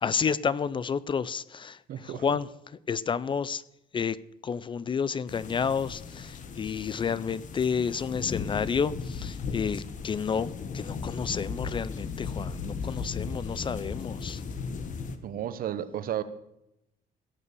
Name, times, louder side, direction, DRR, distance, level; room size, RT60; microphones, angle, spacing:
voice 1, 0.0-2.5 2.9-3.6 3.9-4.2 4.4-14.4, left 6 dB, 30° left, 19 dB, 0.4 m, -30 dB
voice 2, 1.9-2.2 15.2-16.2, right 11 dB, 60° right, 14 dB, 1.0 m, -33 dB
sound 1, 5.3-15.2, left 5 dB, 50° left, 1.3 m, -36 dB
17.5 x 7.0 x 6.8 m, 0.83 s
cardioid pair, 125°, 17 cm